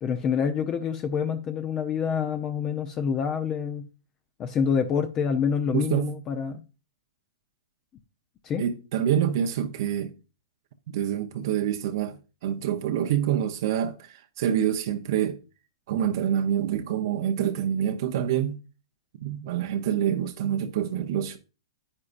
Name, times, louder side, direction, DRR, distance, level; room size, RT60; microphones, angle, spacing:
voice 1, 0.0-3.9 4.4-6.6 8.4-8.6, left 7 dB, 25° left, 0.8 m, -27 dB
voice 2, 5.7-6.2 8.6-10.1 10.9-15.4 15.9-18.6 19.2-21.4, right 10 dB, 55° right, 0.9 m, -26 dB
9.8 x 8.5 x 2.6 m
hypercardioid pair, 130°, 2 cm